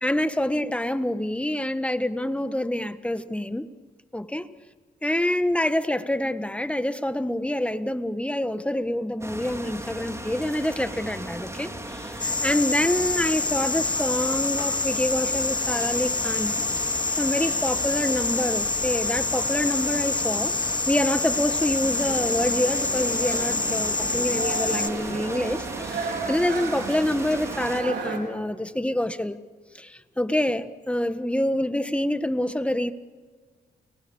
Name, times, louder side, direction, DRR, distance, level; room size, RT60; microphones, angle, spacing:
voice 1, 0.0-3.7 4.1-4.4 5.0-16.6 17.2-20.5 20.9-29.4 29.7-32.9, left 1 dB, 5° left, 1.6 m, -26 dB
sound 1, 9.2-27.8, right 1 dB, 15° right, 4.5 m, -37 dB
sound 2, 12.2-24.9, left 3 dB, 25° left, 1.2 m, -27 dB
sound 3, 21.8-28.2, right 5 dB, 85° right, 5.0 m, -34 dB
30.0 x 19.5 x 7.2 m
cardioid pair, 65°, 18 cm